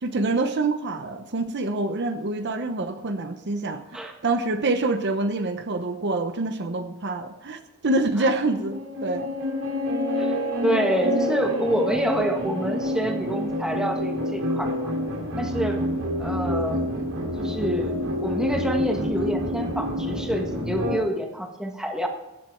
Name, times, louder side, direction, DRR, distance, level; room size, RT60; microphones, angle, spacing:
voice 1, 0.0-9.3, right 2 dB, 55° right, 8 dB, 0.8 m, -26 dB
sound 1, 8.1-21.0, left 1 dB, 70° right, 3.2 m, -28 dB
voice 2, 10.1-14.9 15.4-15.9 16.2-16.8 17.4-17.9 18.2-22.1, equal, 5° right, 3 dB, 1.4 m, -27 dB
15.5 x 7.8 x 4.5 m, 0.98 s
head